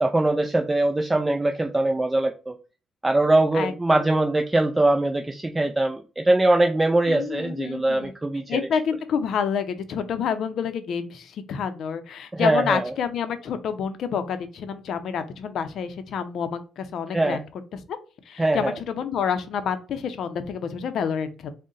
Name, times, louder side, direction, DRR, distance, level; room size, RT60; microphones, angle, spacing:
voice 1, 0.0-2.5 3.0-8.6 12.3-12.9 17.1-17.4 18.4-18.8, right 2 dB, 15° right, 4 dB, 0.3 m, -22 dB
voice 2, 3.5-4.1 7.1-8.1 8.5-17.4 17.7-18.0 18.3-21.5, left 7 dB, 70° left, 10 dB, 0.5 m, -28 dB
3.7 x 2.1 x 3.8 m, 0.34 s
cardioid pair, 90°, 0 cm